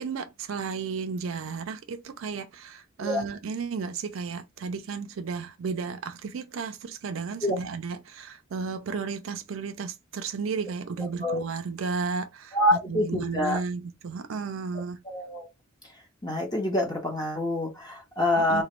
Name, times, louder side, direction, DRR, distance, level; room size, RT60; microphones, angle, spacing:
voice 1, 0.0-12.6 12.9-15.0 18.4-18.6, right 5 dB, 70° right, 0.4 m, -33 dB
voice 2, 12.5-13.6 15.0-15.5 16.2-18.6, left 1 dB, 20° left, 0.8 m, -26 dB
3.0 x 2.2 x 2.9 m
head